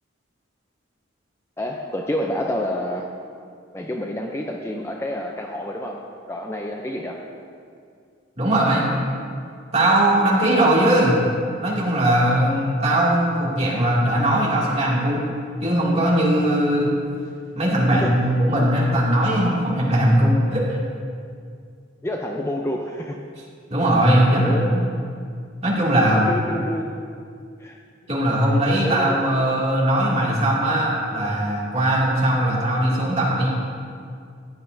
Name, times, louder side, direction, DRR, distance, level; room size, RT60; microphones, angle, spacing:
voice 1, 1.6-3.1 3.7-7.2 18.0-18.2 22.0-23.2 24.3-24.8 26.0-26.9 27.6-27.8 28.8-29.5, left 1 dB, 15° left, 1 dB, 0.5 m, -28 dB
voice 2, 8.4-8.9 9.7-11.2 11.6-15.2 15.6-16.9 17.6-20.6 23.7-24.7 25.6-26.2 28.1-33.5, right 1 dB, 30° right, -6 dB, 2.4 m, -19 dB
15.5 x 9.0 x 2.7 m, 2.3 s
head